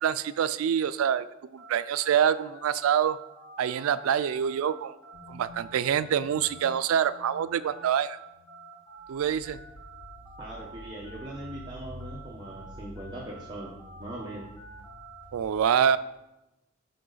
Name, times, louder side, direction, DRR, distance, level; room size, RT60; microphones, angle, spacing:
voice 1, 0.0-1.3 1.5-3.2 3.6-4.9 5.3-8.2 9.1-9.6 15.3-16.0, right 8 dB, 90° right, 14 dB, 0.3 m, -26 dB
sound 1, 1.6-11.7 12.0-15.2, right 3 dB, 15° left, 1.5 m, -48 dB
sound 2, 5.1-7.8 8.2-8.6 8.9-15.4, left 1 dB, 80° left, 2.2 m, -49 dB
voice 2, 10.4-13.7 14.0-14.4, right 1 dB, 20° right, -4 dB, 0.8 m, -40 dB
10.5 x 4.0 x 3.9 m, 0.94 s
head